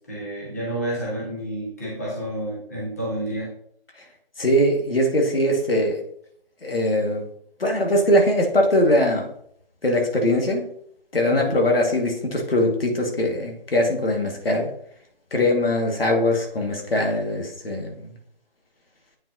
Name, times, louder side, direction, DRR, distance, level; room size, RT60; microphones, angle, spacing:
voice 1, 0.0-3.5 11.3-11.6, right 1 dB, 15° left, -6 dB, 1.4 m, -30 dB
voice 2, 4.4-6.0 6.6-7.2 7.6-9.3 9.8-10.6 11.1-14.7 15.3-18.1, left 1 dB, 75° left, 1 dB, 1.9 m, -21 dB
8.7 x 5.3 x 2.8 m, 0.66 s
figure-of-eight pair, 180°, 29 cm